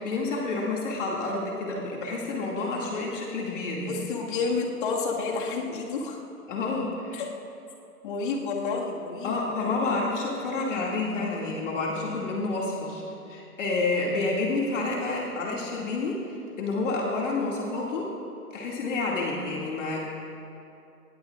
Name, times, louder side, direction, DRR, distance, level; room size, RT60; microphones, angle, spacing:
voice 1, 0.0-4.0 6.5-7.2 9.2-18.1 18.5-20.1, left 3 dB, 50° left, -3 dB, 2.4 m, -29 dB
voice 2, 3.8-6.2 7.1-7.3 8.0-9.8, left 4 dB, 35° left, -1 dB, 1.9 m, -30 dB
21.0 x 19.5 x 2.5 m, 2.8 s
hypercardioid pair, 160°, 47 cm